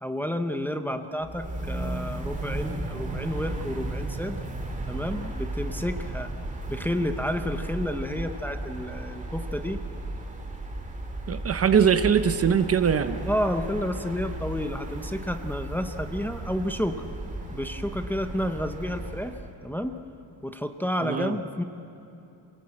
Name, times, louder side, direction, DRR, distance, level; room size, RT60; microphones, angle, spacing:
voice 1, 0.0-4.4 4.9-6.3 6.7-9.8 13.3-17.0 17.5-19.4 19.6-20.0 20.4-21.6, equal, 5° left, 7 dB, 0.7 m, -30 dB
sound 1, 1.2-19.5, right 2 dB, 20° right, 2.0 m, -35 dB
voice 2, 11.3-13.2 21.0-21.4, right 7 dB, 35° right, 11 dB, 0.7 m, -22 dB
27.0 x 18.5 x 8.8 m, 2.8 s
cardioid pair, 175°, 41 cm